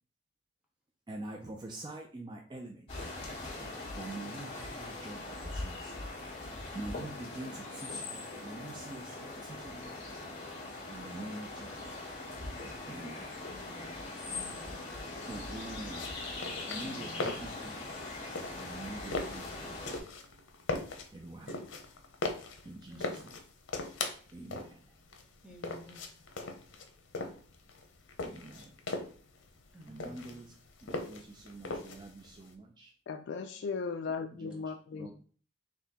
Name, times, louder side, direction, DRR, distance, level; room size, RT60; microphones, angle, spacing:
voice 1, 1.1-3.1 3.9-5.9 6.7-10.0 10.9-12.1 12.9-13.4 15.3-16.1 16.6-18.0 18.5-19.8 21.1-21.5 22.6-23.4 24.3-25.0 28.2-28.7 29.9-30.6 30.8-32.9 34.3-34.6 34.9-35.2, right 2 dB, 25° right, 2 dB, 0.4 m, -45 dB
sound 1, 2.9-20.0, left 2 dB, 30° left, 1.7 m, -41 dB
voice 2, 13.5-14.8 16.8-17.4 18.2-18.5 22.9-23.3 25.4-26.1 28.6-28.7 29.7-30.2, equal, 5° right, -1 dB, 1.0 m, -53 dB
sound 2, 15.9-32.5, left 3 dB, 85° left, 0.7 m, -40 dB
voice 3, 33.1-35.1, left 5 dB, 65° left, 5 dB, 0.3 m, -37 dB
4.2 x 2.9 x 4.1 m, 0.42 s
head